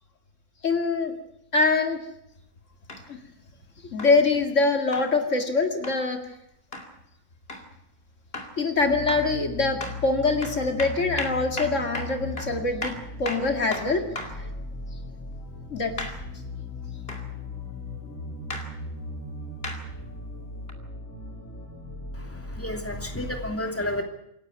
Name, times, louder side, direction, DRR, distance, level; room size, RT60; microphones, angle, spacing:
voice 1, 0.6-1.1 1.5-2.0 3.1-3.2 3.9-6.2 8.6-12.9 13.2-14.0 15.7-15.9, left 3 dB, 75° left, 5 dB, 2.5 m, -24 dB
sound 1, 2.9-3.1 4.0-4.2 4.9-5.1 5.8-6.0 6.7-6.9 7.5-7.7 8.3-8.6 9.1-9.3 9.8-10.0 10.4-14.4 16.0-16.2 17.1-17.3 18.5-18.7 19.6-19.8 20.7-20.8, left 1 dB, 50° left, 2.9 m, -35 dB
sound 2, 8.7-23.5, left 2 dB, 90° left, 3.8 m, -38 dB
voice 2, 22.1-24.0, left 1 dB, 10° left, 3 dB, 2.9 m, -31 dB
26.5 x 11.5 x 9.4 m, 0.78 s
omnidirectional pair, 1.3 m